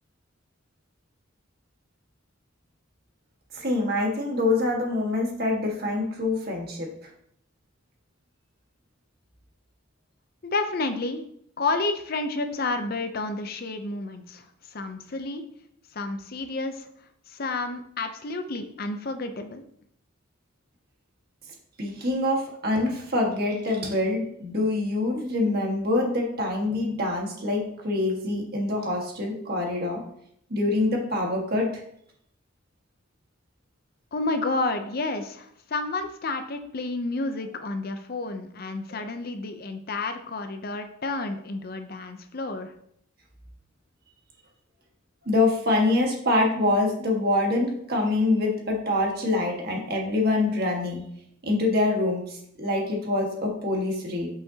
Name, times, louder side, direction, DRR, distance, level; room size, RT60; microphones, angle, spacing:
voice 1, 3.5-6.9 21.8-30.0 30.5-31.7 45.3-51.0 51.4-54.3, left 2 dB, 50° right, 0 dB, 1.6 m, -25 dB
voice 2, 10.4-11.2 11.6-15.4 15.9-16.9 17.3-19.6 34.1-42.7, left 3 dB, 50° left, 7 dB, 0.6 m, -30 dB
8.3 x 5.7 x 2.8 m, 0.71 s
head